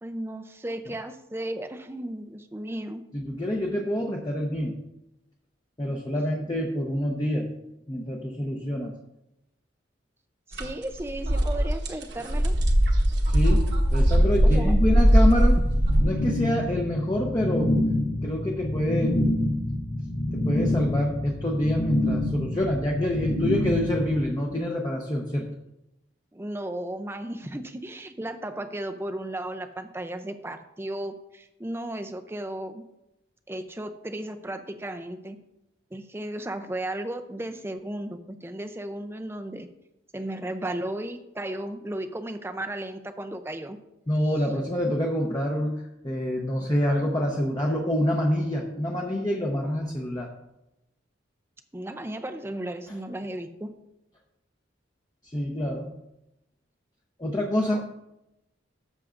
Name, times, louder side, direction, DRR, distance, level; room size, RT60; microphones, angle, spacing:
voice 1, 0.0-3.0 10.5-12.5 14.4-14.8 26.3-32.9 33.5-35.4 35.9-39.7 40.1-43.8 51.7-53.7 57.7-57.8, right 1 dB, 10° right, 7 dB, 0.5 m, -35 dB
voice 2, 3.1-4.8 5.8-7.5 7.9-8.9 13.3-15.6 16.0-17.8 18.2-19.2 20.3-25.5 44.1-45.7 46.0-50.3 52.9-53.0 55.2-55.9 57.2-57.8, left 1 dB, 20° left, -1 dB, 0.8 m, -27 dB
sound 1, 10.5-10.7 11.0-16.0, equal, 60° right, 1.2 m, -20 dB
sound 2, 15.6-24.2, left 1 dB, 75° left, 1.5 m, -27 dB
13.5 x 6.5 x 2.5 m, 0.89 s
head